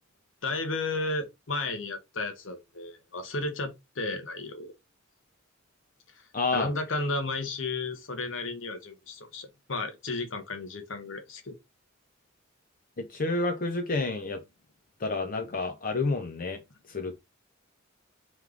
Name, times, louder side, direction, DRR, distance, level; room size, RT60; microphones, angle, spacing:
voice 1, 0.4-4.7 6.5-11.5, left 3 dB, 75° left, 1.0 m, -33 dB
voice 2, 6.3-6.7 13.0-14.4 15.0-16.6 16.9-17.1, left 3 dB, 45° left, 0.6 m, -29 dB
3.5 x 3.1 x 3.6 m
head